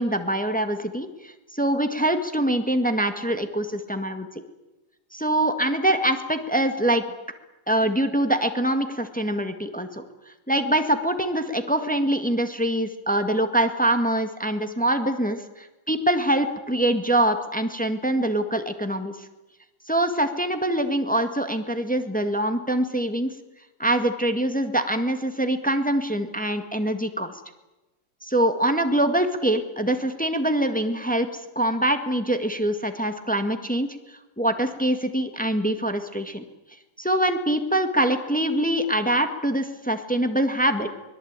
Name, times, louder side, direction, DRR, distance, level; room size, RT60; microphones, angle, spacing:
voice 1, 0.0-4.3 5.1-7.0 7.7-10.0 10.5-19.3 19.9-23.3 23.8-27.3 28.2-36.4 37.0-40.9, right 1 dB, 5° left, 7 dB, 1.6 m, -24 dB
24.5 x 21.5 x 8.9 m, 1.0 s
omnidirectional pair, 2.1 m